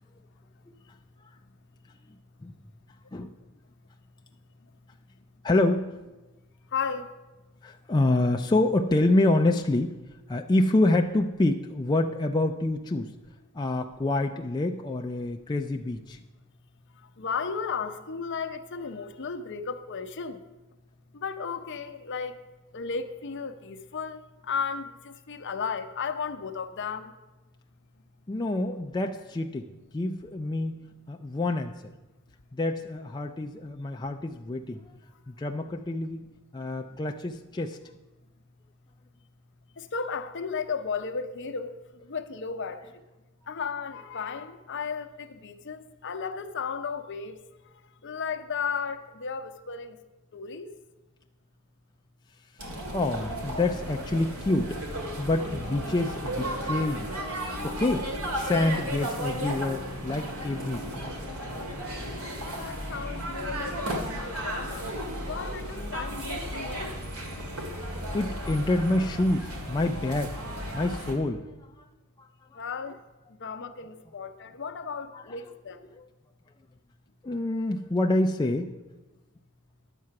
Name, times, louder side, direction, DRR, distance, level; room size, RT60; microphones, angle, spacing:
voice 1, 5.4-6.0 7.6-10.0 10.3-13.1 13.5-16.2 28.3-29.7 29.9-30.8 31.1-31.9 32.5-34.9 35.3-36.2 36.5-37.8 52.9-54.8 55.2-57.2 57.6-61.0 67.5-67.7 68.1-70.4 70.7-71.9 72.2-72.6 75.1-75.2 75.9-76.1 77.2-78.7, left 2 dB, 20° left, 0.4 m, -27 dB
voice 2, 6.7-7.1 16.9-20.4 21.1-22.4 22.7-27.1 36.9-37.0 39.8-43.0 43.5-47.4 48.0-50.0 50.3-50.8 62.5-64.9 65.3-67.0 72.5-73.0 73.3-75.8, left 5 dB, 55° left, 0.7 m, -34 dB
sound 1, 52.6-71.1, equal, 80° right, 2.0 m, -34 dB
11.0 x 7.5 x 5.8 m
head